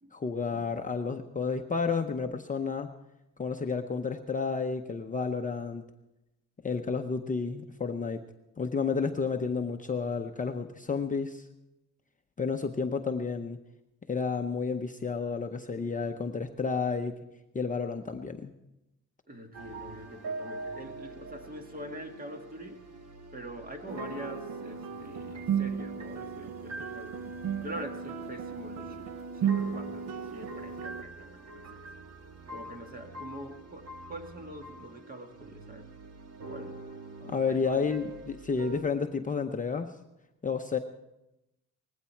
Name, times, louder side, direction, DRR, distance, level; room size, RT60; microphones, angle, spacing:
voice 1, 0.1-2.9 3.4-5.8 6.6-8.2 8.6-11.5 12.4-13.6 14.1-17.2 17.5-18.5 37.2-39.9 40.4-40.8, left 5 dB, 25° left, 5 dB, 0.7 m, -31 dB
voice 2, 19.3-22.8 23.3-27.2 27.6-29.2 29.4-31.9 32.5-35.9 36.5-36.8 37.5-38.2, right 1 dB, 25° right, 4 dB, 2.0 m, -44 dB
sound 1, 19.5-38.8, right 2 dB, 50° right, 1.6 m, -45 dB
sound 2, 23.9-31.0, right 7 dB, 70° right, 0.9 m, -35 dB
19.5 x 16.0 x 4.5 m, 0.93 s
cardioid pair, 130°, 34 cm